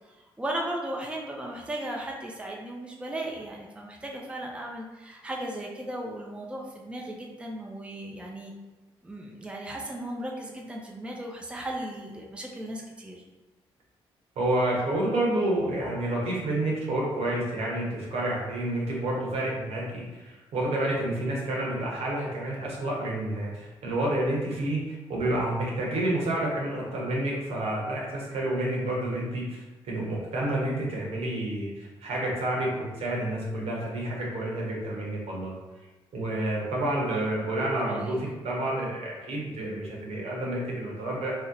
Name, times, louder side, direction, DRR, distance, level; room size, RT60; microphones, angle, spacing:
voice 1, 0.4-8.5 9.0-13.2 37.9-38.2, right 1 dB, 10° right, -1 dB, 0.5 m, -36 dB
voice 2, 14.4-35.5 36.1-41.3, right 1 dB, 70° right, -3 dB, 1.0 m, -29 dB
2.8 x 2.0 x 3.8 m, 1.2 s
supercardioid pair, 60°, 11 cm